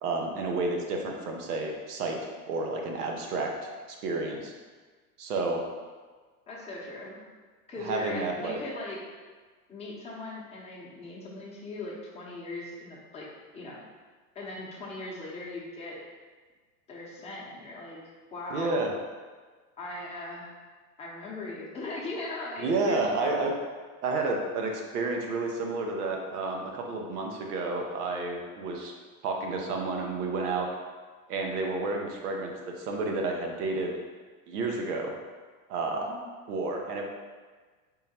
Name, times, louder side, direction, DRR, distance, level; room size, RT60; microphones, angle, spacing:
voice 1, 0.0-3.5 4.0-4.5 5.2-5.6 7.8-8.6 18.5-18.9 22.6-23.5 24.0-28.9 29.2-30.7 31.3-34.0 34.5-35.1 35.7-36.1 36.5-37.0, right 3 dB, 90° right, 1 dB, 0.8 m, -30 dB
voice 2, 6.5-7.2 7.7-9.0 9.7-13.3 13.5-13.8 14.3-16.0 16.9-18.0 18.3-18.8 19.8-20.5 21.0-23.5 35.8-36.2, left 2 dB, 15° left, -5 dB, 0.7 m, -39 dB
3.7 x 2.1 x 4.2 m, 1.4 s
hypercardioid pair, 120°, 45 cm